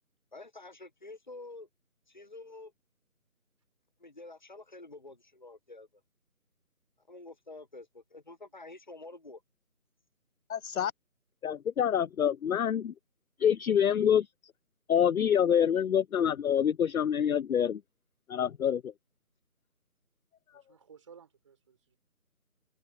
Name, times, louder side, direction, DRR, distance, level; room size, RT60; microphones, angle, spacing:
voice 1, 0.3-1.7 2.1-2.7 4.0-5.9 7.1-9.4, left 2 dB, 30° left, 0.8 m, -48 dB
voice 2, 10.5-10.9 11.4-12.9 13.4-14.3 14.9-17.8 18.3-18.9, left 8 dB, 70° left, 0.5 m, -26 dB
voice 3, 20.5-22.0, right 6 dB, 20° right, 3.5 m, -56 dB
figure-of-eight pair, 170°, 44 cm